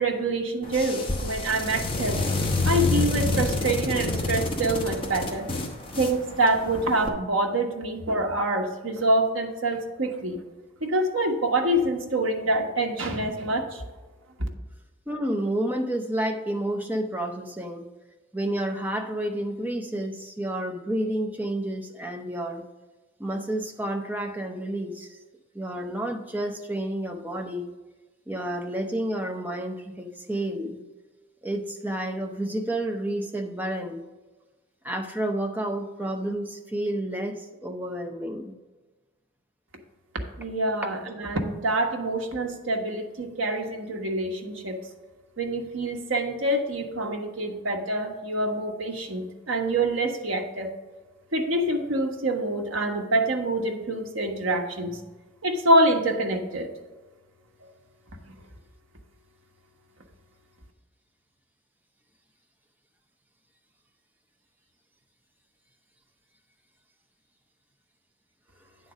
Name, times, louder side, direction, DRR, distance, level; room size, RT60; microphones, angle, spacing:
voice 1, 0.0-2.2 2.6-5.5 6.0-10.4 10.8-13.8 40.4-44.8 45.4-50.7 51.3-55.0 55.4-56.7, right 1 dB, 80° right, 2 dB, 1.1 m, -26 dB
sound 1, 0.6-7.1, left 2 dB, 25° left, 0.9 m, -28 dB
voice 2, 15.1-17.9 18.3-22.6 23.2-25.2 25.5-27.7 28.3-30.8 31.4-34.1 34.8-38.6, right 1 dB, 10° right, 3 dB, 0.6 m, -30 dB
9.1 x 4.0 x 6.1 m, 1.2 s
head